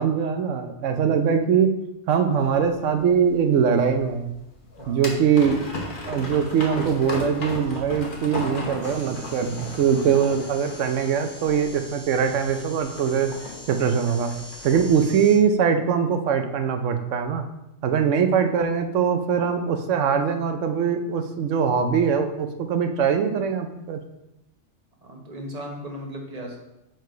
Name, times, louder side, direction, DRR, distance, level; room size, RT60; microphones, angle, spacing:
voice 1, 0.0-1.7 2.1-4.3 4.9-5.6 6.1-13.3 13.7-14.3 14.6-17.4 17.8-24.0, right 7 dB, 75° right, 7 dB, 0.9 m, -22 dB
sound 1, 2.3-15.3, left 2 dB, 45° left, 1.1 m, -36 dB
voice 2, 4.8-5.1 9.9-10.1 25.0-26.6, equal, 35° right, 1 dB, 1.0 m, -37 dB
sound 2, 8.8-15.4, equal, 85° left, 2.4 m, -43 dB
4.8 x 4.6 x 4.5 m, 0.88 s
omnidirectional pair, 1.3 m